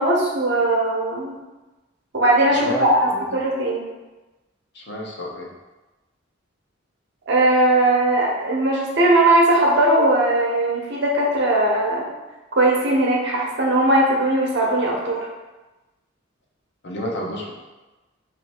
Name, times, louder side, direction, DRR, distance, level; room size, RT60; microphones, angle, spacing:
voice 1, 0.0-1.3 2.1-3.0 3.3-3.8 7.3-12.1 12.5-15.2, right 1 dB, 60° right, -3 dB, 0.9 m, -19 dB
voice 2, 2.5-3.3 4.7-5.5 16.8-17.5, equal, 55° left, -1 dB, 0.7 m, -30 dB
3.2 x 2.7 x 4.4 m, 1.1 s
head